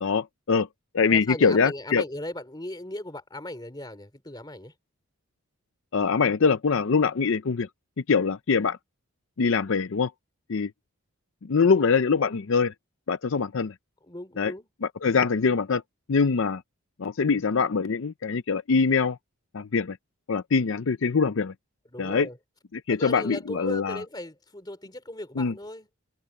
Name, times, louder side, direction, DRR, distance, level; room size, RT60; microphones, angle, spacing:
voice 1, 0.0-0.7 0.9-2.0 5.9-7.7 8.1-8.8 9.4-10.1 10.5-10.7 11.4-12.7 13.1-13.7 14.4-14.5 15.0-15.8 16.1-16.6 17.0-19.2 19.5-20.0 20.3-21.5 22.0-22.3 22.7-24.0 25.4-25.5, left 5 dB, 60° left, 0.5 m, -23 dB
voice 2, 1.1-4.7 14.0-14.7 21.9-22.4 22.9-25.9, left 1 dB, 20° left, 2.9 m, -37 dB
head